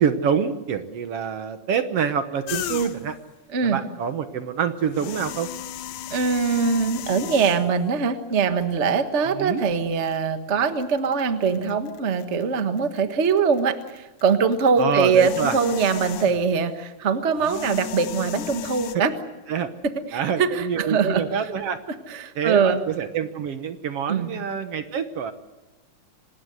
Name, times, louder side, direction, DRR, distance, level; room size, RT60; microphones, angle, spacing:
voice 1, 0.0-3.2 3.6-5.5 9.2-9.6 14.8-15.6 19.5-19.7 20.1-21.8 22.4-25.3, right 7 dB, 60° right, 9 dB, 1.9 m, -26 dB
sound 1, 2.5-3.2 4.8-7.9 8.7-8.8 10.0-10.2 10.6-13.0 13.3-16.6 17.3-19.0, left 11 dB, 75° left, 2.3 m, -35 dB
voice 2, 6.1-19.1 19.8-21.2 22.1-22.8 24.1-24.3, right 5 dB, 40° right, 8 dB, 1.0 m, -22 dB
26.5 x 19.5 x 7.9 m, 1.1 s
omnidirectional pair, 3.5 m